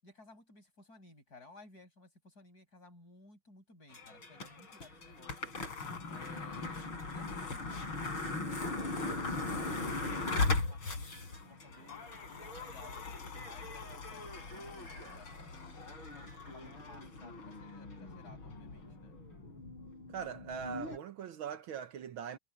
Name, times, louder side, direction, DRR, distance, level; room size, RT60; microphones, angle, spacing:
voice 1, 0.0-5.5 6.1-10.0 10.3-12.0 12.3-15.8 16.1-19.2, left 3 dB, 45° left, 7.7 m, -58 dB
sound 1, 3.9-21.0, left 3 dB, 65° left, 5.6 m, -39 dB
voice 2, 20.1-22.4, right 8 dB, 70° right, 1.7 m, -41 dB
omnidirectional pair, 2.4 m